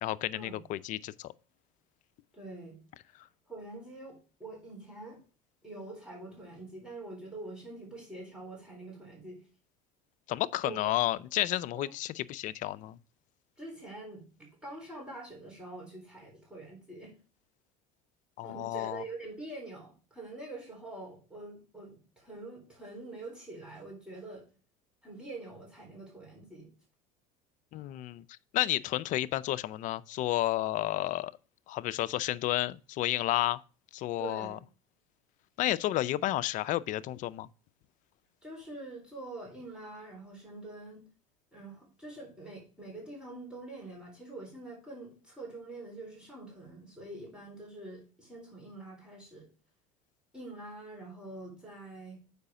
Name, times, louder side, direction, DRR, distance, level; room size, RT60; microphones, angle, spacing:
voice 1, 0.0-1.3 10.3-13.0 18.4-19.0 27.7-28.2 28.5-31.3 31.7-33.6 33.9-34.6 35.6-37.5, left 15 dB, 50° left, 0.4 m, -31 dB
voice 2, 2.3-2.8 3.5-5.2 5.6-9.4 10.6-10.8 11.7-11.9 13.6-17.1 18.4-24.4 25.0-26.7 34.2-34.6 38.4-41.0 41.5-49.4 50.3-52.2, right 2 dB, 5° right, 3.9 m, -45 dB
6.7 x 4.9 x 5.0 m
supercardioid pair, 100°, 17 cm